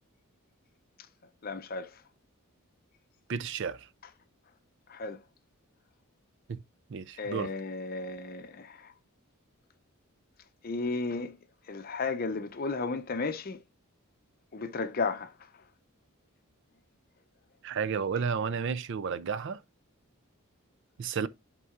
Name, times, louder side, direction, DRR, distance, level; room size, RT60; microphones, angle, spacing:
voice 1, 1.4-2.0 4.9-5.2 7.2-8.9 10.6-11.3 11.7-13.6 14.5-15.3, left 4 dB, 40° left, 0.6 m, -34 dB
voice 2, 3.3-3.8 6.5-6.6 6.9-7.5 17.6-19.6 21.0-21.3, right 6 dB, 55° right, 0.4 m, -32 dB
11.0 x 3.7 x 2.4 m
head